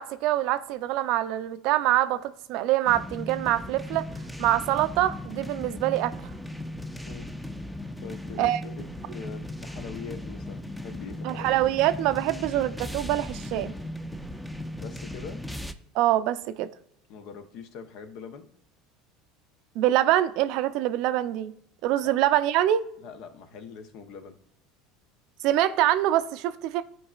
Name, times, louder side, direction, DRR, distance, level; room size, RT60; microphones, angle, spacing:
voice 1, 0.0-4.1 4.4-6.2 8.4-8.6 11.2-13.7 15.9-16.7 19.8-21.5 21.8-22.8 25.4-26.8, right 13 dB, 60° right, 0.5 m, -24 dB
sound 1, 2.9-15.7, left 1 dB, ahead, 0.6 m, -37 dB
voice 2, 8.0-11.6 14.8-15.4 17.1-18.5 22.0-22.1 23.0-24.4, left 6 dB, 65° left, 0.9 m, -43 dB
12.5 x 4.6 x 2.4 m
hypercardioid pair, 75°, 0 cm